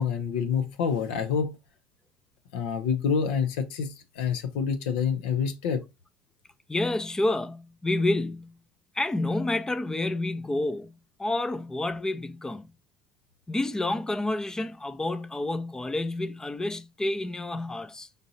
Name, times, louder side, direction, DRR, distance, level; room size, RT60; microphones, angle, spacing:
voice 1, 0.0-1.5 2.5-5.8, left 6 dB, 90° left, 0.5 m, -27 dB
voice 2, 6.7-8.5 8.9-10.9 11.2-12.7 13.5-18.1, left 2 dB, 10° left, 0.4 m, -29 dB
5.2 x 2.6 x 2.8 m
supercardioid pair, 100°, 5 cm